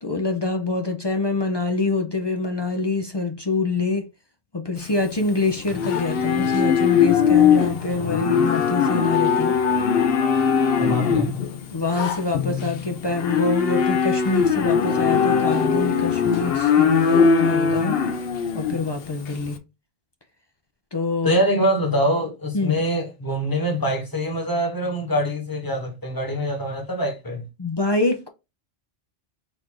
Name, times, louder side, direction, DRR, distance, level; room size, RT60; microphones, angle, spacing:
voice 1, 0.0-4.1 4.5-9.5 10.9-11.2 11.7-18.0 18.5-19.6 20.9-21.4 22.5-22.7 27.6-28.3, left 3 dB, 45° left, 0.3 m, -25 dB
Livestock farm animals working animals, 4.8-19.5, left 6 dB, 60° left, 0.8 m, -21 dB
voice 2, 10.8-11.4 21.2-27.5, equal, 20° left, 1.0 m, -24 dB
4.0 x 2.5 x 4.6 m
omnidirectional pair, 1.2 m